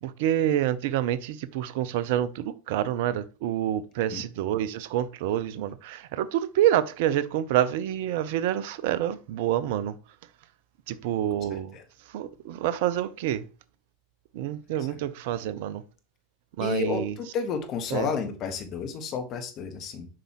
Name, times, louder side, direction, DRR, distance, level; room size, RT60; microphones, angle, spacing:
voice 1, 0.0-10.0 10.9-13.5 14.3-15.8 16.6-17.2 17.9-18.1, right 11 dB, 60° right, 0.6 m, -27 dB
voice 2, 16.6-17.0 17.3-20.1, left 6 dB, 40° left, 1.7 m, -31 dB
7.6 x 5.3 x 3.1 m
figure-of-eight pair, 85°, 0 cm